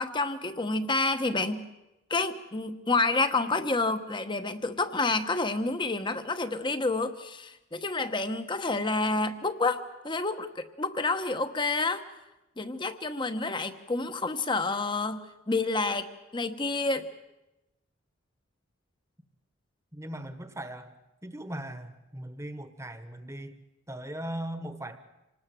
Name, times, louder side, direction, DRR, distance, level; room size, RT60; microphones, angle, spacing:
voice 1, 0.0-1.7 2.1-12.0 12.6-16.1 16.3-17.1, left 3 dB, 20° left, 9 dB, 1.0 m, -29 dB
voice 2, 19.9-21.0 21.2-23.6 23.9-25.0, right 1 dB, 15° right, 10 dB, 1.3 m, -39 dB
26.5 x 19.0 x 7.6 m, 0.97 s
head